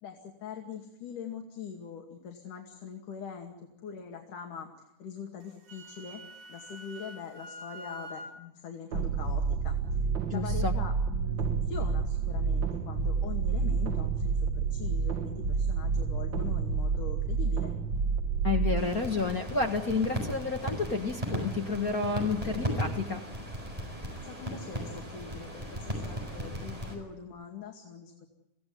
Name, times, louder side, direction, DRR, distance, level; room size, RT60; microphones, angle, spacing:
voice 1, 0.0-3.5 3.8-4.7 5.0-6.2 6.5-10.0 10.3-17.7 24.2-28.3, left 6 dB, 85° left, 2 dB, 3.9 m, -43 dB
Wind instrument woodwind instrument, 5.4-8.4, equal, 85° right, 3.6 m, -45 dB
sound 1, 8.9-18.8, right 5 dB, 50° right, 1.5 m, -29 dB
voice 2, 10.3-10.7 18.4-23.2, left 4 dB, 40° left, 3 dB, 1.6 m, -30 dB
sound 2, 18.8-27.0, equal, 10° right, 6.7 m, -36 dB
25.5 x 17.0 x 9.5 m, 0.92 s
omnidirectional pair, 3.5 m